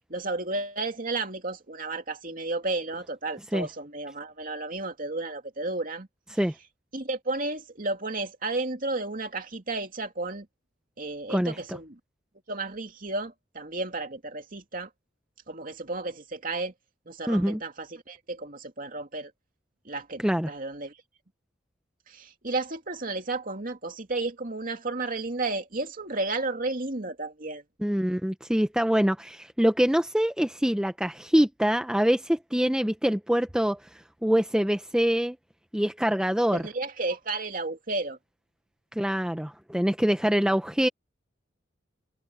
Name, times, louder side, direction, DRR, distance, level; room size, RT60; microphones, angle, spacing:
voice 1, 0.1-6.1 6.9-10.5 11.0-12.0 12.5-14.9 15.5-16.7 17.1-19.3 19.8-20.9 22.1-27.6 36.5-38.2, right 2 dB, 45° right, 2.6 m, -32 dB
voice 2, 11.3-11.8 17.3-17.6 20.2-20.5 27.8-33.9 34.2-35.4 35.7-36.6 38.9-40.9, equal, 5° right, 0.6 m, -25 dB
head